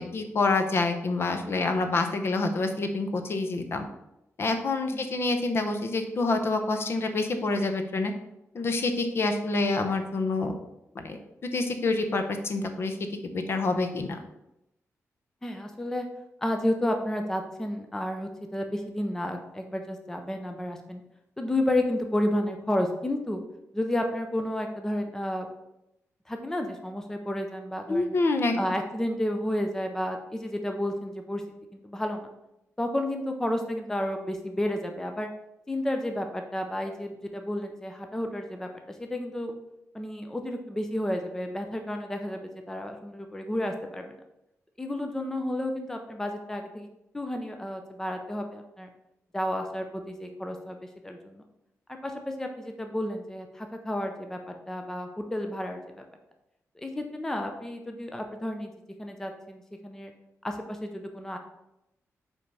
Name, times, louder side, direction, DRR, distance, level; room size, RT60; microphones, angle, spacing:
voice 1, 0.0-3.9 4.4-8.1 8.5-10.6 10.9-13.0 13.2-14.2 27.9-28.6, left 3 dB, 45° left, 6 dB, 0.7 m, -27 dB
voice 2, 15.4-16.1 16.4-21.0 21.4-23.4 23.7-25.5 26.3-28.2 28.6-31.4 31.7-32.3 32.8-35.3 35.7-39.5 39.9-44.2 44.8-46.9 47.1-48.9 49.3-50.8 51.0-51.4 52.0-56.0 56.8-58.7 59.0-60.1 60.4-61.4, left 1 dB, 10° left, 4 dB, 0.6 m, -31 dB
5.4 x 4.6 x 5.4 m, 0.87 s
wide cardioid pair, 170°, 6 cm